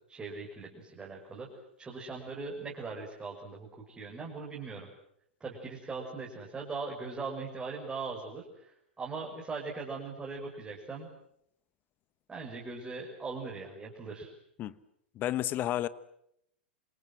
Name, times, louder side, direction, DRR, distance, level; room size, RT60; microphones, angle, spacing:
voice 1, 0.1-1.5 1.8-4.9 5.4-11.1 12.3-14.3, right 4 dB, 15° right, 6.3 m, -40 dB
voice 2, 15.1-15.9, left 13 dB, 30° left, 1.3 m, -31 dB
28.0 x 27.5 x 7.6 m
figure-of-eight pair, 100°, 6 cm